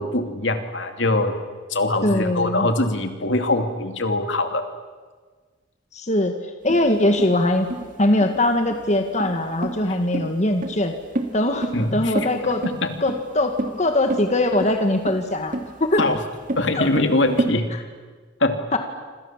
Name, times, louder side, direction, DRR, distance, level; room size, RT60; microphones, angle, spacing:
voice 1, 0.0-1.3 1.7-4.7 11.7-12.1 12.4-12.5 12.8-12.9 16.0-16.2 16.6-17.7 18.4-18.6, left 2 dB, 70° left, 6 dB, 2.7 m, -22 dB
voice 2, 2.0-2.7 5.9-6.3 6.6-7.7 8.0-10.9 11.3-12.6 13.0-16.1 16.8-16.9 17.7-17.8 18.7-18.8, left 1 dB, 35° left, 5 dB, 1.9 m, -21 dB
sound 1, 6.7-17.5, right 1 dB, 45° right, 2.6 m, -29 dB
27.5 x 27.5 x 7.5 m, 1.5 s
head